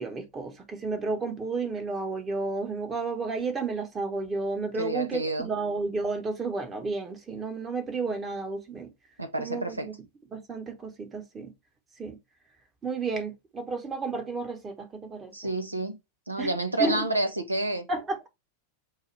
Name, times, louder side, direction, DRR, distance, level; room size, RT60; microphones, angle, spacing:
voice 1, 0.0-8.9 9.4-9.9 10.3-11.5 12.0-12.2 12.8-15.3 16.4-16.5 16.8-16.9 17.9-18.3, right 3 dB, 20° right, 1.1 m, -32 dB
voice 2, 4.8-5.5 9.2-9.9 15.3-16.0 16.3-17.9, right 2 dB, 85° right, 0.8 m, -29 dB
6.5 x 2.3 x 3.3 m
figure-of-eight pair, 90°, 0 cm